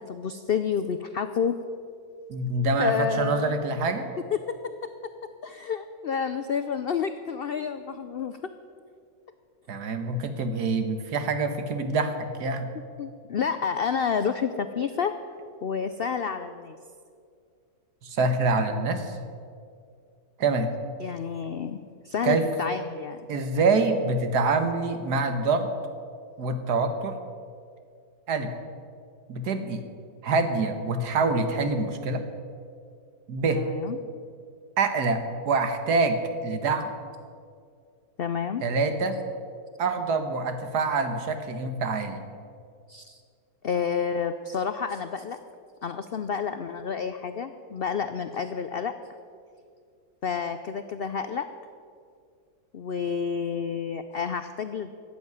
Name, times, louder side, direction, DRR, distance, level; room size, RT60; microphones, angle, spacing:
voice 1, 0.1-1.6 2.8-3.5 4.5-4.9 5.4-8.4 13.0-15.2 15.6-16.8 21.0-21.8 22.0-23.2 33.6-34.0 38.2-38.6 42.9-43.2 43.6-45.4 45.8-48.9 50.2-51.5 52.7-54.9, left 6 dB, 75° left, 10 dB, 0.5 m, -29 dB
voice 2, 2.3-4.1 9.7-12.7 18.0-19.2 20.4-20.7 22.2-22.5 23.3-25.7 26.4-27.2 28.3-28.5 29.3-29.9 30.2-32.2 33.3-33.7 34.8-36.9 38.6-39.2 39.8-42.2, right 3 dB, 85° right, 8 dB, 1.8 m, -26 dB
13.0 x 8.4 x 9.5 m, 2.3 s
omnidirectional pair, 1.7 m